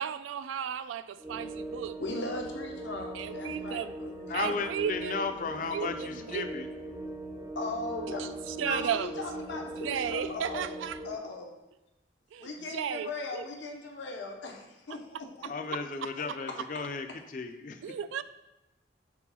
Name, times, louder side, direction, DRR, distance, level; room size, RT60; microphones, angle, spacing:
voice 1, 0.0-2.0 3.1-4.0 4.3-5.3 5.7-6.5 8.2-9.2 9.5-11.0 12.3-13.5 15.7-16.4 17.8-18.2, right 8 dB, 90° right, 0.3 m, -35 dB
sound 1, 1.2-11.2, right 1 dB, 10° right, 0.5 m, -40 dB
voice 2, 2.0-4.3 7.6-10.8 11.0-11.5 12.4-15.0, left 2 dB, 75° left, 0.8 m, -38 dB
voice 3, 4.3-6.7 15.5-17.8, left 4 dB, 45° left, 0.4 m, -35 dB
4.8 x 3.9 x 5.5 m
head